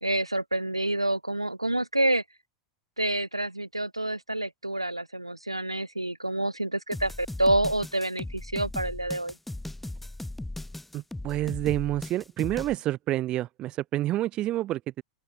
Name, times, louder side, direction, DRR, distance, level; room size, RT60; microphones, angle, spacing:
voice 1, 0.0-2.2 3.0-9.3, right 1 dB, 85° right, 3.2 m, -28 dB
sound 1, 6.9-12.7, left 1 dB, 5° left, 1.8 m, -38 dB
voice 2, 10.9-15.0, right 14 dB, 35° right, 1.3 m, -28 dB
open air
figure-of-eight pair, 90°, 3 cm